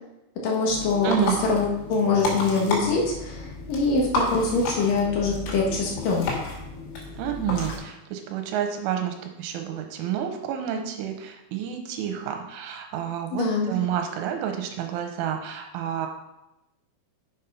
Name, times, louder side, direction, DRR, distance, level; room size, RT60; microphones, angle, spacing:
voice 1, 0.4-1.1 1.4-6.3 13.4-13.7, left 4 dB, 60° left, -2 dB, 2.5 m, -24 dB
sound 1, 0.7-7.8, left 2 dB, 85° left, 5.0 m, -32 dB
voice 2, 1.0-1.4 7.2-16.1, right 9 dB, 90° right, 5 dB, 3.5 m, -29 dB
7.4 x 7.1 x 5.5 m, 0.92 s
omnidirectional pair, 5.5 m